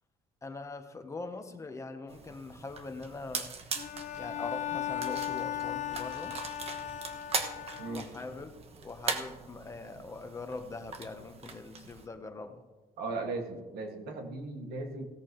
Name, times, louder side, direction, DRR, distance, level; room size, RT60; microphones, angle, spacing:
voice 1, 0.4-3.5 4.2-6.4 7.9-8.5 8.8-12.7, left 3 dB, 20° left, 7 dB, 0.9 m, -42 dB
sound 1, 2.1-12.1, right 5 dB, 40° right, 1.1 m, -40 dB
Bowed string instrument, 3.8-8.4, left 10 dB, 50° left, 0.7 m, -37 dB
voice 2, 13.0-15.0, right 3 dB, 85° right, 3 dB, 2.0 m, -37 dB
16.5 x 13.5 x 3.1 m, 1.2 s
cardioid pair, 150°, 16 cm